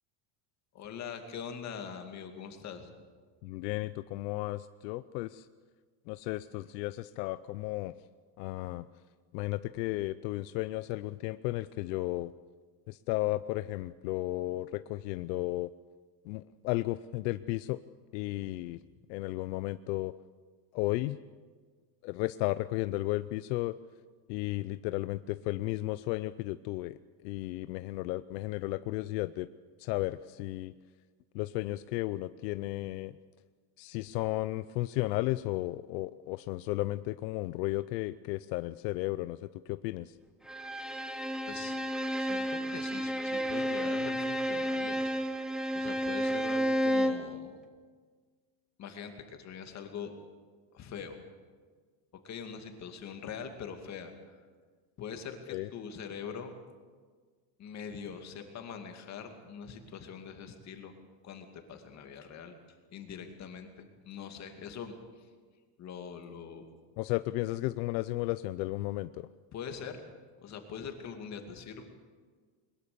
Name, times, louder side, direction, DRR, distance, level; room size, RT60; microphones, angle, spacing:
voice 1, 0.7-2.9 41.4-41.8 42.2-45.0 45.7-47.6 48.8-50.1 50.7-51.2 52.2-54.4 55.0-56.6 57.6-61.0 61.2-62.5 62.9-65.3 65.8-66.6 69.5-70.0 70.4-71.8, left 7 dB, 35° left, 5 dB, 2.4 m, -43 dB
voice 2, 3.4-5.5 6.1-7.9 8.4-8.9 9.3-12.3 12.9-15.7 16.3-17.8 18.1-18.8 19.1-20.1 20.7-21.2 22.0-23.8 24.3-27.0 27.2-29.5 29.8-30.7 31.3-33.1 33.8-40.1 55.5-55.7 67.0-69.3, left 18 dB, 80° left, 14 dB, 0.7 m, -34 dB
Bowed string instrument, 40.5-47.3, equal, ahead, 0.7 m, -31 dB
22.0 x 21.0 x 6.9 m, 1.5 s
cardioid pair, 165°, 50 cm